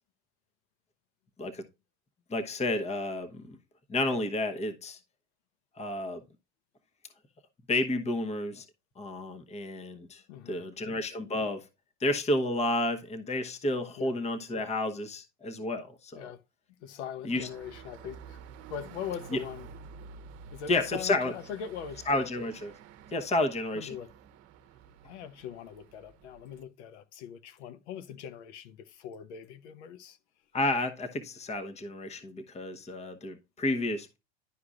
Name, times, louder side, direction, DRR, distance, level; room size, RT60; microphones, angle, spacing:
voice 1, 2.3-3.6 3.9-5.0 5.8-6.2 7.7-8.6 9.0-11.6 12.0-16.3 17.2-17.5 19.3-19.4 20.7-21.3 22.1-22.7 23.1-24.0 30.5-34.2, left 2 dB, 20° left, 1.0 m, -31 dB
voice 2, 10.3-10.7 14.0-14.2 16.1-16.4 16.8-18.4 18.7-19.7 20.5-22.1 23.7-24.1 25.0-30.2, left 8 dB, 80° left, 0.9 m, -41 dB
sound 1, 17.3-26.6, right 6 dB, 50° right, 0.9 m, -50 dB
11.0 x 4.9 x 2.4 m
supercardioid pair, 100°, 33 cm